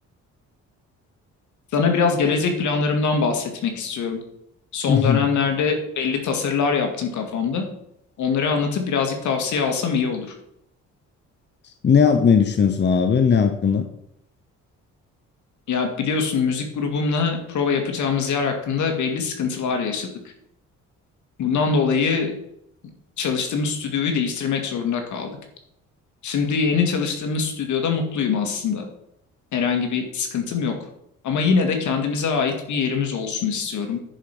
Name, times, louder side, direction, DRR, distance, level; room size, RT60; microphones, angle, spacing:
voice 1, 1.7-4.2 4.7-7.6 8.2-10.3 15.7-20.1 21.4-22.3 23.2-25.3 26.2-28.9 29.5-30.7 31.2-34.0, left 5 dB, 75° left, 4 dB, 2.1 m, -23 dB
voice 2, 4.9-5.3 11.6-13.9, left 6 dB, 35° left, 8 dB, 0.9 m, -18 dB
10.5 x 4.9 x 6.1 m, 0.76 s
cardioid pair, 90°, 30 cm